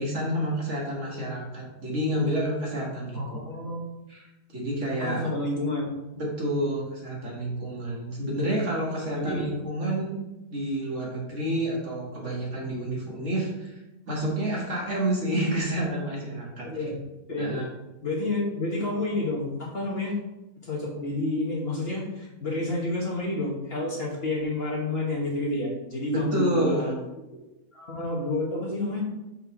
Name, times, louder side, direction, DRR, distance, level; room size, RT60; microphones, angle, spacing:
voice 1, 0.0-3.4 4.1-4.2 4.5-5.3 6.1-10.2 10.5-16.7 17.4-17.6 26.1-26.9, right 1 dB, 50° right, -3 dB, 1.9 m, -29 dB
voice 2, 3.1-3.8 5.0-5.9 9.1-9.5 16.6-17.0 17.3-17.5 18.0-20.2 20.6-26.9 27.3-27.4 27.7-29.0, left 2 dB, 40° left, -3 dB, 1.5 m, -29 dB
5.6 x 4.5 x 5.8 m, 1.0 s
omnidirectional pair, 1.7 m